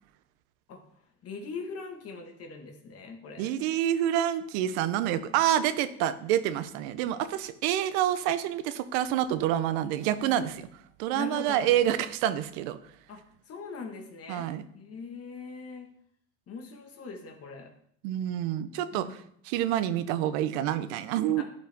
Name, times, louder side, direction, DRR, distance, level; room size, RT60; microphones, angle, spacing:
voice 1, 1.2-3.5 11.1-11.8 13.1-13.2 13.5-14.5 14.7-15.9 16.5-17.7 18.9-19.3 21.4-21.5, left 4 dB, 45° left, 3 dB, 1.6 m, -41 dB
voice 2, 3.4-10.7 11.0-12.8 14.3-14.6 18.0-19.2 19.5-21.4, right 11 dB, 80° right, 13 dB, 0.7 m, -27 dB
11.5 x 5.2 x 3.5 m, 0.67 s
supercardioid pair, 110°, 33 cm